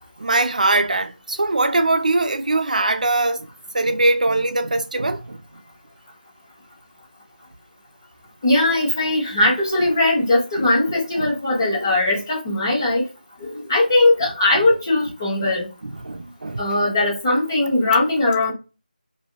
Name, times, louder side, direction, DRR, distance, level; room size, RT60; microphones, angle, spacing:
voice 1, 0.2-3.5 3.7-5.4 10.6-10.7 11.2-11.3 15.8-16.6, right 2 dB, 55° right, 0.5 m, -21 dB
voice 2, 8.4-13.0 13.4-15.7 16.6-18.5, left 2 dB, 25° left, 1.4 m, -19 dB
3.0 x 2.7 x 2.8 m
figure-of-eight pair, 175°, 5 cm